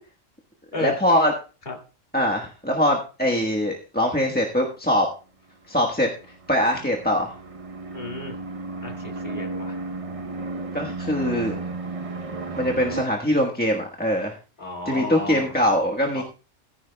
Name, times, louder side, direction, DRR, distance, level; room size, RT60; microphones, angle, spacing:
voice 1, 0.8-1.3 2.1-5.1 5.7-6.1 6.5-7.3 10.7-11.6 12.6-14.4 14.8-16.2, equal, 10° left, -1 dB, 1.2 m, -22 dB
sound 1, 5.7-13.0, right 3 dB, 30° right, 0.8 m, -34 dB
voice 2, 7.9-8.4 8.8-9.8 14.6-15.5 16.1-16.2, left 2 dB, 35° left, 2 dB, 2.3 m, -33 dB
15.5 x 15.0 x 2.3 m, 0.35 s
omnidirectional pair, 1.3 m